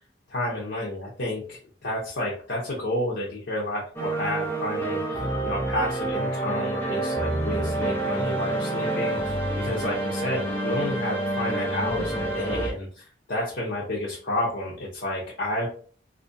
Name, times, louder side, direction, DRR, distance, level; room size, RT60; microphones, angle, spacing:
voice 1, 0.3-15.7, left 1 dB, 75° left, -5 dB, 0.6 m, -30 dB
sound 1, 4.0-12.7, right 2 dB, 10° left, 0.5 m, -28 dB
2.5 x 2.1 x 2.5 m, 0.42 s
head